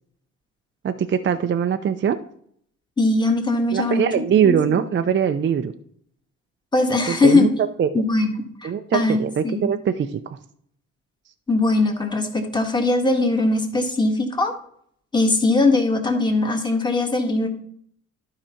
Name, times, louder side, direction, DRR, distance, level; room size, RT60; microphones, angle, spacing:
voice 1, 0.8-2.2 3.7-5.7 7.1-7.9 8.6-10.4, right 8 dB, 40° right, 8 dB, 0.6 m, -22 dB
voice 2, 3.0-4.8 6.7-7.5 7.9-9.2 9.4-9.7 11.5-14.5 15.1-17.5, left 2 dB, 15° left, 3 dB, 1.7 m, -20 dB
11.5 x 4.9 x 4.4 m, 0.65 s
cardioid pair, 90°, 30 cm